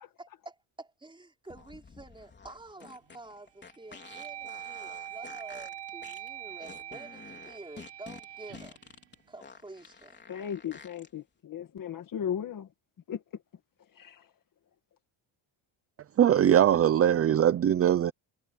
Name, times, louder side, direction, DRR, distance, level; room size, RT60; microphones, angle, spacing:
voice 1, 0.2-8.8 9.3-10.2, right 2 dB, 10° right, 4.9 m, -48 dB
sound 1, 1.4-11.1, left 5 dB, 20° left, 4.0 m, -50 dB
sound 2, 2.8-3.2 3.7-9.9, right 11 dB, 60° right, 6.1 m, -44 dB
voice 2, 10.3-12.7 13.1-13.2 14.0-14.3, left 9 dB, 40° left, 1.9 m, -36 dB
voice 3, 16.2-18.1, right 10 dB, 30° right, 0.5 m, -21 dB
cardioid pair, 175°, 48 cm